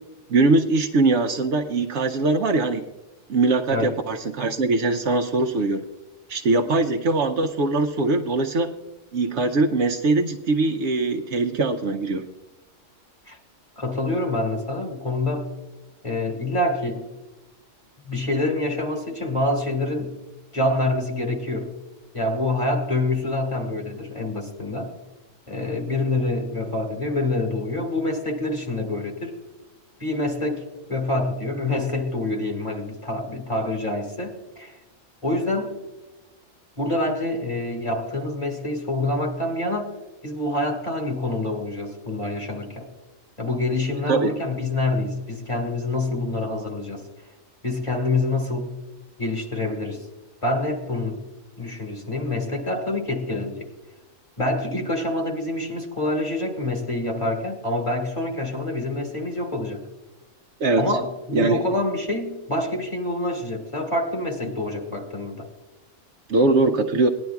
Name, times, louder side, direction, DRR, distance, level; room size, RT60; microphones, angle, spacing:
voice 1, 0.3-2.9 3.3-5.9 6.3-8.7 9.1-12.3 44.1-44.3 60.6-60.8 61.3-61.6 66.3-67.1, right 3 dB, 65° right, 4 dB, 0.9 m, -21 dB
voice 2, 13.8-15.5 16.0-17.0 18.0-20.1 20.5-21.7 22.1-24.9 25.5-29.3 30.0-30.6 30.9-34.8 35.2-35.7 36.8-39.9 40.2-42.9 43.4-47.0 47.6-48.7 49.2-50.1 50.4-51.2 51.6-53.7 54.4-59.8 60.8-65.5, left 2 dB, 25° left, 1 dB, 1.9 m, -26 dB
19.0 x 11.0 x 2.3 m, 1.1 s
omnidirectional pair, 1.4 m